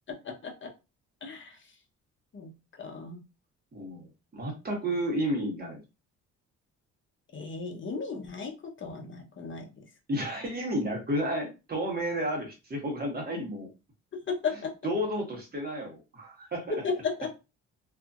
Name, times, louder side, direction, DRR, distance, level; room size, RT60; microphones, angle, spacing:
voice 1, 1.2-1.6 2.3-2.5 2.8-3.2 7.3-8.5 8.8-9.6 14.3-14.5 16.8-17.3, left 5 dB, 40° left, 2 dB, 1.0 m, -34 dB
voice 2, 3.7-5.8 10.1-13.7 14.5-16.8, equal, 30° right, 0 dB, 1.3 m, -32 dB
2.7 x 2.7 x 2.4 m, 0.28 s
cardioid pair, 90°, 30 cm